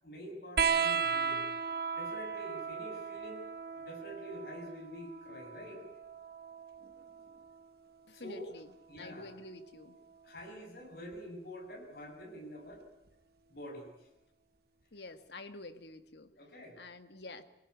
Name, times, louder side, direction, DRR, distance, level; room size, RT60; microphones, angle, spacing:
voice 1, 0.0-1.5 1.9-3.5 3.7-5.9 8.1-8.5 8.9-9.3 10.2-12.8 13.5-13.9 16.4-16.8, equal, 55° left, 2 dB, 7.0 m, -46 dB
sound 1, 0.6-7.6 9.0-9.8 11.1-11.2, right 6 dB, 55° right, 1.0 m, -36 dB
voice 2, 8.1-8.7 9.0-10.0 14.9-16.3 16.8-17.4, left 2 dB, 75° left, 9 dB, 1.9 m, -48 dB
24.0 x 18.0 x 9.7 m, 0.88 s
head